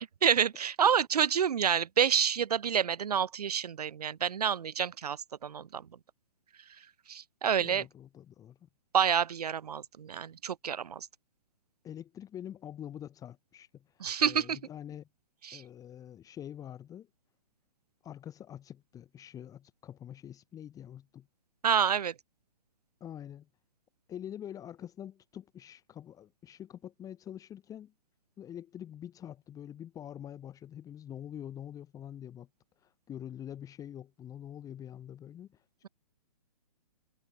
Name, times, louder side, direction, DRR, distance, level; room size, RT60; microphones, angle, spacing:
voice 1, 0.2-5.9 7.1-7.8 8.9-11.1 14.0-14.6 15.4-15.6 21.6-22.1, right 8 dB, 70° right, 0.9 m, -28 dB
voice 2, 7.6-8.6 11.8-15.1 15.5-17.1 18.0-21.3 23.0-23.5 24.1-27.9 28.4-32.5 32.8-35.9, left 10 dB, 15° left, 2.3 m, -45 dB
figure-of-eight pair, 125°, 21 cm